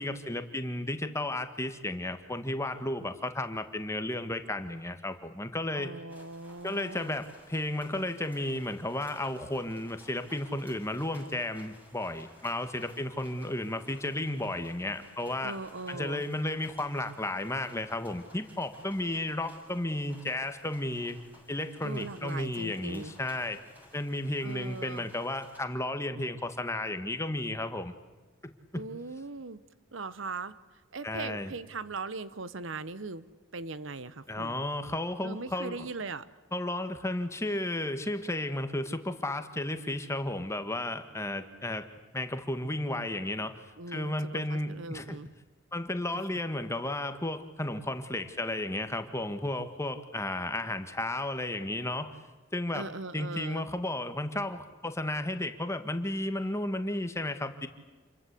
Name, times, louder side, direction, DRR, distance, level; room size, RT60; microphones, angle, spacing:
voice 1, 0.0-5.9 6.6-15.6 15.9-21.2 21.5-23.6 23.9-27.9 28.4-28.5 31.0-31.5 34.3-35.9 36.5-41.8 42.1-43.6 43.9-45.2 45.7-52.1 52.5-52.9 53.1-57.7, left 1 dB, 15° left, 8 dB, 1.8 m, -33 dB
voice 2, 5.7-7.2 15.4-16.2 21.8-23.1 24.4-25.1 28.7-29.6 29.9-33.2 33.5-34.6 35.2-36.3 43.8-45.3 46.1-46.2 52.7-53.7, right 3 dB, 70° right, 15 dB, 1.0 m, -40 dB
sound 1, 6.1-25.6, left 1 dB, 10° right, 7.1 m, -57 dB
28.5 x 22.5 x 8.5 m, 1.3 s
head